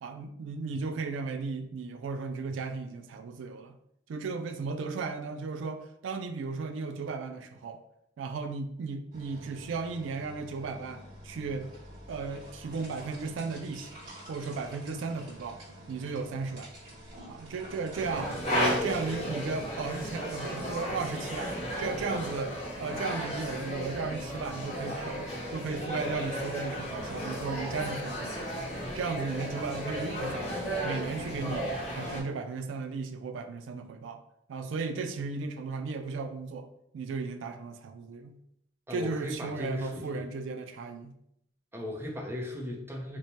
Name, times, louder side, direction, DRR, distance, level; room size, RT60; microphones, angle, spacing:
voice 1, 0.0-3.8 4.1-7.8 8.2-11.7 12.1-14.0 14.3-15.6 15.9-16.7 17.3-18.3 18.6-21.5 21.8-28.6 28.9-34.2 34.5-36.7 36.9-38.4 38.9-41.1, right 4 dB, 80° right, 7 dB, 0.3 m, -35 dB
sound 1, 9.1-19.2, equal, 40° right, 1.4 m, -48 dB
sound 2, 18.0-32.2, equal, 30° left, 0.9 m, -34 dB
voice 2, 38.9-40.3 41.7-43.2, left 1 dB, 10° right, 0 dB, 0.5 m, -37 dB
3.1 x 2.1 x 4.1 m, 0.77 s
head